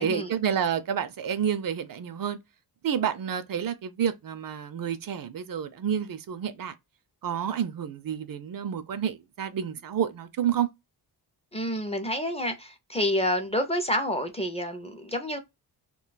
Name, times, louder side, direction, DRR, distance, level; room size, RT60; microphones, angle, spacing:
voice 1, 0.0-2.4 2.8-6.7 7.2-10.7, right 8 dB, 55° right, 0.5 m, -29 dB
voice 2, 11.5-15.4, left 1 dB, 15° left, 0.5 m, -28 dB
2.4 x 2.3 x 3.8 m
wide cardioid pair, 135°, 40 cm